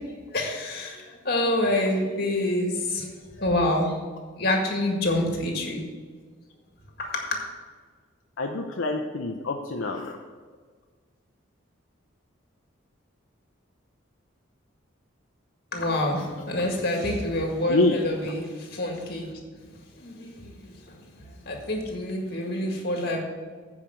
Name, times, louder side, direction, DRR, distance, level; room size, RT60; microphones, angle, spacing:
voice 1, 0.3-3.9 4.4-5.8 7.0-7.5 15.7-19.4 20.0-21.1 21.4-23.2, left 1 dB, 50° left, 1 dB, 1.9 m, -27 dB
voice 2, 8.4-10.1 17.7-18.0, left 2 dB, 75° left, 2 dB, 0.6 m, -26 dB
8.9 x 5.0 x 7.6 m, 1.5 s
head